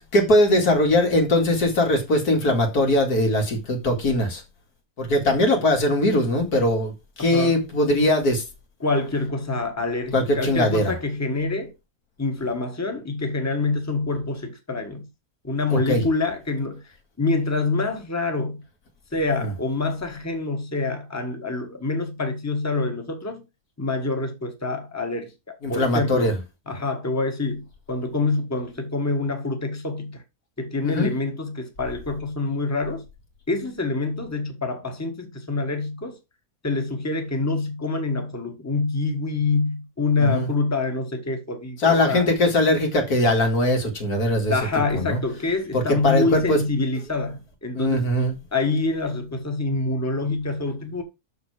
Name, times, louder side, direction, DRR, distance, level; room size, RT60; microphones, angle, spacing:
voice 1, 0.1-4.4 5.0-8.4 10.1-10.9 15.7-16.0 19.4-19.5 25.6-26.4 30.8-31.1 40.2-40.5 41.8-44.5 44.9-45.2 45.7-46.6 47.7-48.3, left 1 dB, 80° left, 2.8 m, -21 dB
voice 2, 7.2-7.5 8.8-11.7 12.2-15.1 15.4-16.9 17.2-18.6 19.1-23.4 23.8-26.3 26.7-30.2 30.6-33.0 33.5-36.2 36.6-42.3 44.5-48.1 48.5-51.0, left 3 dB, 10° left, 1.6 m, -26 dB
6.8 x 6.6 x 4.9 m
omnidirectional pair, 1.6 m